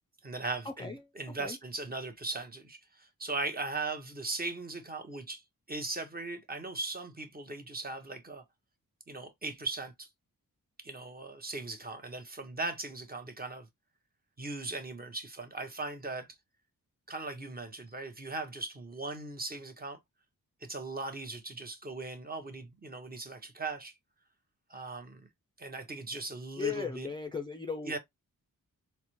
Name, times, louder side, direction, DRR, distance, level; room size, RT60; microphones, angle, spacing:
voice 1, 0.2-5.4 5.7-8.4 9.1-10.1 10.8-13.7 14.4-16.3 17.1-20.0 20.6-23.9 24.7-25.3 25.6-27.1 27.8-28.0, right 3 dB, 25° right, 0.8 m, -38 dB
voice 2, 26.6-28.0, left 5 dB, 15° left, 0.3 m, -36 dB
4.1 x 2.1 x 2.9 m
wide cardioid pair, 100°, 34 cm